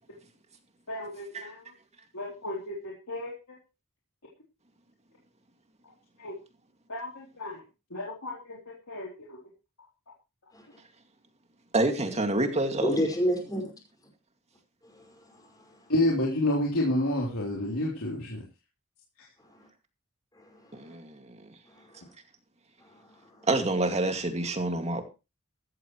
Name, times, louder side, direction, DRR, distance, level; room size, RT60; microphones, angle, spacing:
voice 1, 0.9-1.6 2.1-3.6 6.2-6.4 6.9-7.6 7.9-9.5 15.9-18.4, left 1 dB, 70° left, 3.7 m, -30 dB
voice 2, 11.7-12.9 20.7-21.4 23.5-25.1, right 2 dB, 30° right, 2.3 m, -27 dB
voice 3, 12.8-13.7 14.8-15.8 19.5-19.7 20.3-20.9 21.8-22.1 22.8-23.5, equal, 15° left, 5.5 m, -32 dB
14.0 x 14.0 x 3.2 m
head